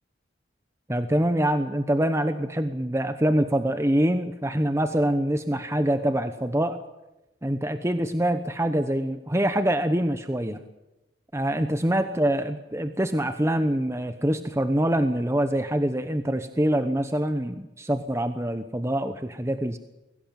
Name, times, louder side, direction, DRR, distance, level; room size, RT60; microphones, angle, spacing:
voice 1, 0.9-6.8 7.4-10.6 11.3-19.8, right 1 dB, 15° right, 9 dB, 1.0 m, -25 dB
22.0 x 17.5 x 9.0 m, 0.96 s
head